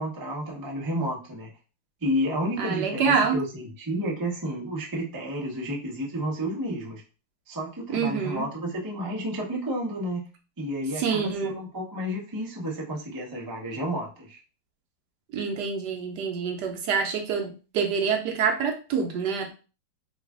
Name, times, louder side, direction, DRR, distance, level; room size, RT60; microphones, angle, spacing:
voice 1, 0.0-1.5 2.0-7.0 7.5-10.3 10.6-14.4, equal, 30° right, -3 dB, 0.3 m, -31 dB
voice 2, 2.6-3.4 7.9-8.5 11.0-11.6 15.3-19.5, right 6 dB, 70° right, 3 dB, 1.1 m, -26 dB
3.2 x 2.4 x 3.5 m, 0.33 s
omnidirectional pair, 2.1 m